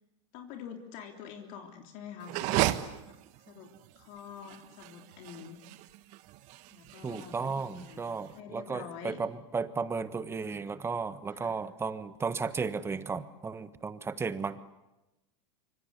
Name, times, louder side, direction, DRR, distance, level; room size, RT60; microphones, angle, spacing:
voice 1, 0.3-2.6 3.5-3.7 4.0-5.6 6.7-9.2 11.3-11.6, left 8 dB, 50° left, 3 dB, 3.4 m, -46 dB
sound 1, 2.2-8.3, right 16 dB, 50° right, 1.4 m, -35 dB
voice 2, 7.0-14.6, right 5 dB, 15° right, 13 dB, 1.3 m, -34 dB
26.0 x 24.5 x 8.4 m, 0.97 s
hypercardioid pair, 120°, 16 cm